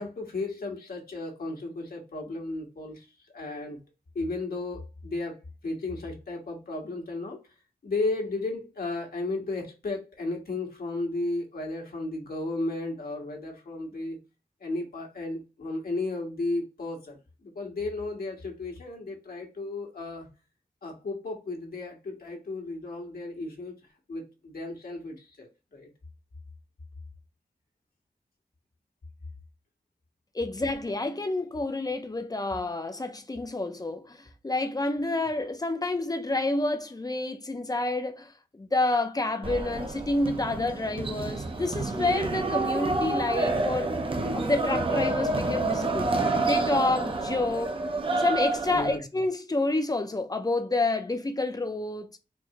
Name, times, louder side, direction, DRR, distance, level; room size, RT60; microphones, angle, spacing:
voice 1, 0.0-3.1 3.3-3.8 4.1-5.3 5.6-7.4 7.8-14.2 14.6-20.3 20.8-23.7 24.1-25.9 48.7-49.0, left 2 dB, 70° left, 1.4 m, -34 dB
voice 2, 30.3-44.0 44.3-46.1 46.4-47.8 48.2-52.1, left 2 dB, 25° left, 0.6 m, -29 dB
sound 1, 39.4-49.0, right 2 dB, 35° right, 0.7 m, -28 dB
4.4 x 2.7 x 2.9 m
wide cardioid pair, 110°, 16 cm